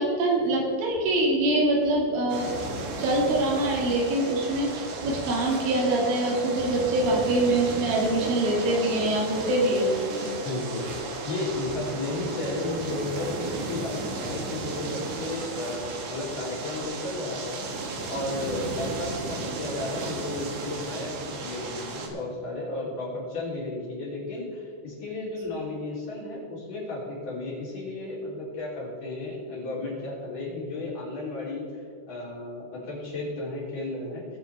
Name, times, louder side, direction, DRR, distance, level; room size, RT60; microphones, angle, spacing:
voice 1, 0.0-2.7 3.0-10.3, right 1 dB, 85° right, -2 dB, 4.6 m, -24 dB
sound 1, 2.3-22.1, right 3 dB, 70° right, 1.8 m, -34 dB
voice 2, 10.4-10.9 11.2-17.7 18.1-34.3, left 2 dB, 45° left, -6 dB, 4.6 m, -33 dB
21.0 x 7.6 x 3.4 m, 2.3 s
omnidirectional pair, 5.4 m